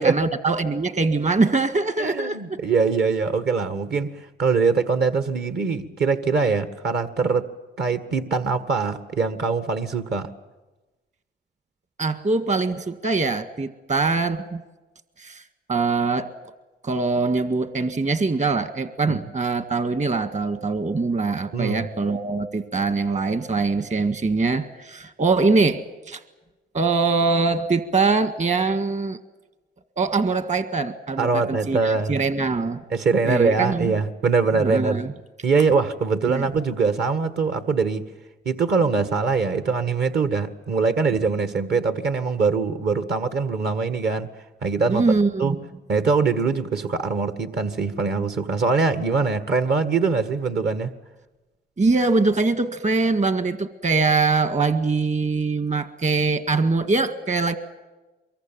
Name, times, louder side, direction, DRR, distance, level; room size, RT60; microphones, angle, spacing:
voice 1, 0.0-2.4 12.0-14.6 15.2-15.4 15.7-16.3 16.8-26.2 26.7-29.2 30.0-32.8 33.3-33.9 34.6-35.1 36.3-36.5 44.9-45.6 51.8-57.6, right 3 dB, 35° right, 11 dB, 1.9 m, -23 dB
voice 2, 2.0-4.1 4.4-7.5 7.8-10.3 19.1-19.2 21.5-21.9 31.2-32.2 32.9-35.0 35.4-38.0 38.5-44.3 44.6-45.0 45.4-45.6 45.9-50.9, right 4 dB, 55° right, 11 dB, 1.7 m, -22 dB
24.0 x 22.5 x 9.2 m, 1.1 s
cardioid pair, 90°, 20 cm